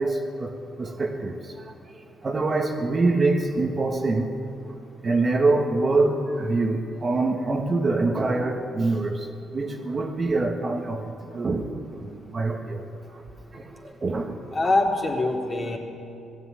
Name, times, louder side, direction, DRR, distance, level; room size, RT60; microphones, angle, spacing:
voice 1, 0.0-1.5 2.2-4.3 5.0-9.3 9.5-11.7 12.0-12.8 13.1-13.2 13.5-14.4, right 3 dB, 30° right, 3 dB, 1.6 m, -25 dB
voice 2, 14.5-15.8, left 2 dB, 30° left, 0 dB, 3.4 m, -23 dB
19.5 x 14.0 x 9.8 m, 2.7 s
cardioid pair, 120°, 0 cm